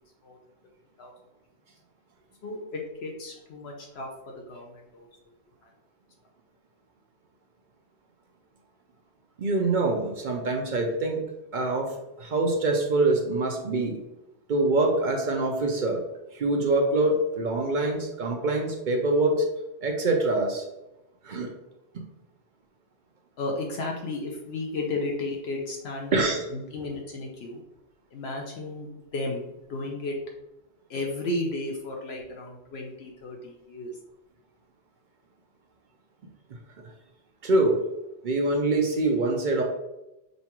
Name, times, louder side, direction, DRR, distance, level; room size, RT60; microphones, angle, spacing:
voice 1, 2.4-5.1 5.6-5.7 23.4-27.6 28.1-30.2 30.9-33.9, left 2 dB, 70° left, 0 dB, 0.9 m, -34 dB
voice 2, 9.4-11.2 11.5-11.9 12.2-14.0 14.5-16.0 16.3-19.5 19.8-20.7 21.2-21.5 21.9-22.0 26.1-26.5 37.4-37.8 38.2-39.6, right 2 dB, 55° right, 2 dB, 0.6 m, -24 dB
5.2 x 2.3 x 2.9 m, 0.92 s
omnidirectional pair, 1.1 m